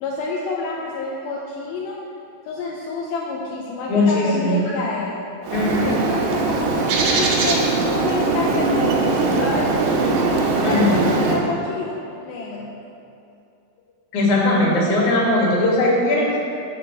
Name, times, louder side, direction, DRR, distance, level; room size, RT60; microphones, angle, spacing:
voice 1, 0.0-2.0 2.5-5.2 5.8-10.1 10.7-12.7, left 3 dB, 75° left, -3 dB, 2.3 m, -28 dB
voice 2, 3.9-4.6 5.5-6.0 10.6-11.0 14.1-16.4, left 2 dB, 55° left, -5 dB, 3.1 m, -19 dB
Bird, 5.4-11.4, right 3 dB, 75° right, 2.9 m, -20 dB
7.6 x 6.9 x 7.4 m, 2.6 s
omnidirectional pair, 4.9 m